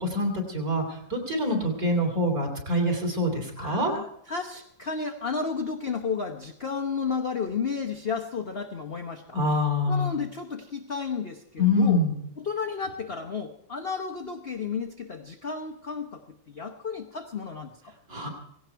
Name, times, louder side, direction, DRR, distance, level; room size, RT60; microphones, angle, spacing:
voice 1, 0.0-3.9 9.3-10.2 11.6-12.2 18.1-18.3, left 1 dB, 45° right, 2 dB, 3.6 m, -25 dB
voice 2, 3.6-9.4 9.9-12.0 12.4-17.9, left 5 dB, 40° left, 2 dB, 0.9 m, -32 dB
17.5 x 17.0 x 4.6 m, 0.74 s
omnidirectional pair, 2.2 m